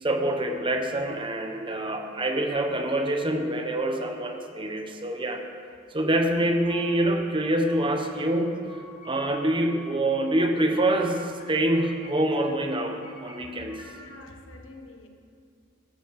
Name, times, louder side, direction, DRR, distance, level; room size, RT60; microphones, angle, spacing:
voice 1, 0.0-5.4 5.9-13.8, right 1 dB, 25° right, 4 dB, 1.1 m, -26 dB
sound 1, 6.1-7.1 7.4-8.1 8.4-9.8 10.1-11.1 11.4-12.1 12.4-13.9, left 2 dB, 40° left, 4.4 m, -50 dB
voice 2, 13.9-15.1, left 2 dB, 75° left, 4 dB, 1.5 m, -46 dB
13.5 x 12.5 x 5.8 m, 2.4 s
head